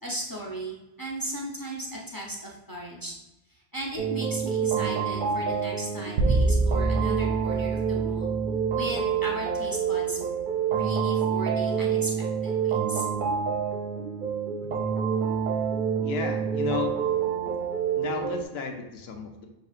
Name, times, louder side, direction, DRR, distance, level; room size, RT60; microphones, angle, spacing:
voice 1, 0.0-3.1 3.5-8.3 8.7-10.2 10.7-13.1, right 1 dB, 25° left, -3 dB, 0.5 m, -36 dB
sound 1, 4.0-18.4, right 7 dB, 60° right, 0.6 m, -27 dB
sound 2, 6.2-8.8, right 2 dB, 90° right, 0.9 m, -26 dB
voice 2, 16.0-17.0 18.0-19.5, left 6 dB, 70° left, 4 dB, 0.9 m, -33 dB
6.5 x 2.7 x 2.4 m, 0.98 s
omnidirectional pair, 1.2 m